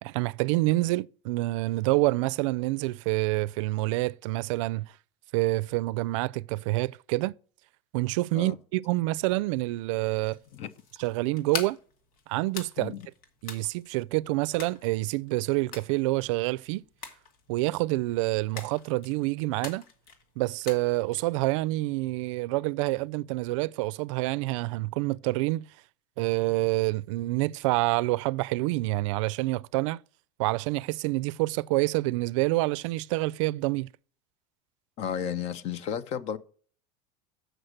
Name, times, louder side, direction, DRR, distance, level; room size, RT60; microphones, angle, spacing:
voice 1, 0.0-4.9 5.3-7.3 7.9-10.4 11.0-11.8 12.3-12.9 13.4-16.8 17.5-19.8 20.4-25.7 26.2-30.0 30.4-33.9, right 20 dB, 65° right, 0.4 m, -27 dB
sound 1, 10.1-21.6, left 6 dB, 80° left, 2.4 m, -44 dB
voice 2, 35.0-36.4, left 8 dB, 40° left, 0.9 m, -33 dB
7.9 x 6.2 x 6.5 m
supercardioid pair, 160°, 17 cm